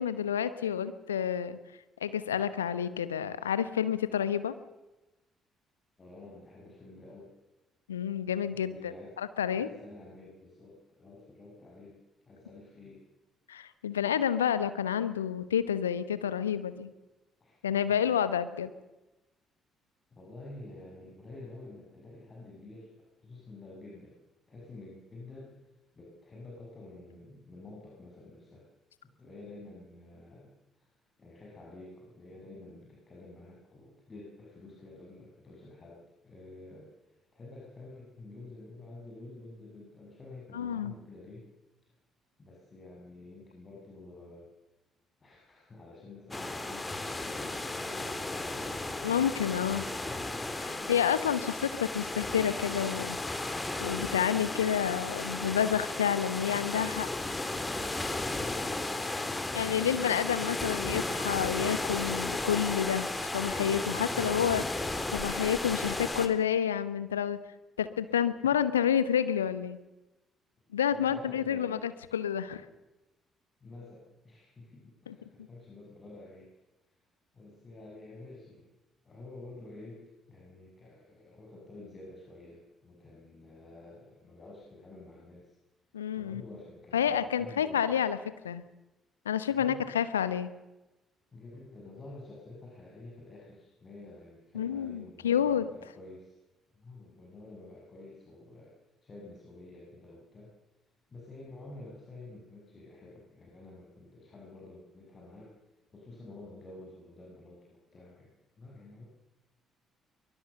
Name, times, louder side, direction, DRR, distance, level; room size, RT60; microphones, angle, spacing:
voice 1, 0.0-1.6 2.0-4.5 7.9-8.9 9.2-9.7 13.5-16.9 17.6-18.7 40.5-40.9 49.0-49.8 50.5-53.2 53.8-57.1 59.5-64.8 65.1-67.4 67.8-69.8 70.7-72.6 75.1-75.2 85.9-86.4 86.9-88.2 88.4-88.6 89.2-90.5 94.5-95.6, left 9 dB, 80° left, 14 dB, 1.0 m, -29 dB
voice 2, 6.0-7.3 8.5-9.2 9.5-12.0 12.3-13.0 17.4-17.6 17.9-18.2 20.1-24.2 24.5-25.5 25.9-28.7 29.2-30.9 31.2-36.9 37.3-41.5 42.4-44.5 45.2-48.8 49.6-50.0 50.6-50.9 58.3-60.2 60.5-60.7 68.0-68.1 68.4-68.5 70.9-71.9 73.6-76.5 77.3-78.7 79.0-85.5 86.2-88.0 89.6-89.9 91.3-96.4 96.7-98.7 99.0-100.5 101.1-105.5 105.9-108.3 108.6-109.1, left 2 dB, 35° left, -2 dB, 6.4 m, -49 dB
sound 1, 46.3-66.3, left 2 dB, 20° left, 2.8 m, -34 dB
23.0 x 22.0 x 6.8 m, 1.0 s
figure-of-eight pair, 45°, 0 cm